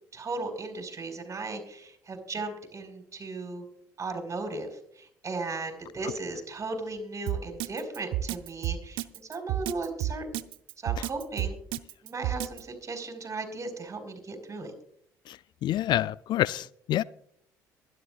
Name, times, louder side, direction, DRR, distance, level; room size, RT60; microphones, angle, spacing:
voice 1, 0.1-3.7 4.0-10.4 10.8-11.6 12.0-14.7, right 3 dB, 35° right, 4 dB, 4.9 m, -36 dB
Drum kit, 7.3-12.6, right 12 dB, 65° right, 0.7 m, -31 dB
voice 2, 15.3-17.0, left 13 dB, 55° left, 20 dB, 0.4 m, -28 dB
23.5 x 11.0 x 2.4 m, 0.68 s
hypercardioid pair, 55°, 9 cm